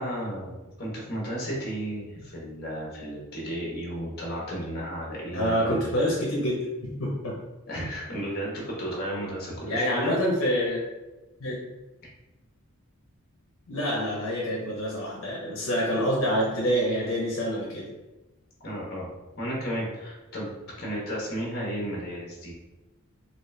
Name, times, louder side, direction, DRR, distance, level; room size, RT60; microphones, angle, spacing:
voice 1, 0.0-5.9 7.7-10.1 18.6-19.1 19.4-22.5, equal, 45° left, -4 dB, 1.2 m, -33 dB
voice 2, 5.3-7.4 9.7-10.8 11.4-11.6 13.7-17.9, equal, 75° left, -3 dB, 0.8 m, -27 dB
4.1 x 2.4 x 3.3 m, 1.1 s
head